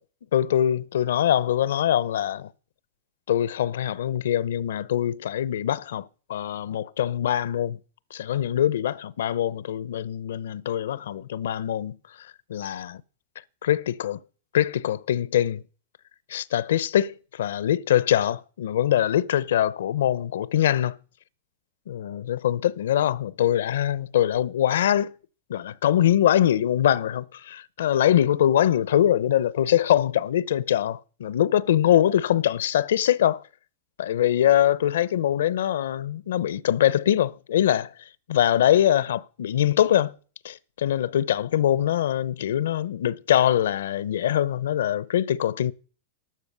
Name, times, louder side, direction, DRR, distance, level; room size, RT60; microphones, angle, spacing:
voice 1, 0.3-2.5 3.3-6.0 6.3-7.8 8.1-12.0 12.5-13.0 13.6-14.2 14.5-15.6 16.3-20.9 21.9-25.1 25.5-33.4 34.0-37.9 38.3-40.1 40.4-45.7, left 11 dB, 85° left, 0.6 m, -23 dB
12.0 x 12.0 x 6.7 m
supercardioid pair, 160°, 0 cm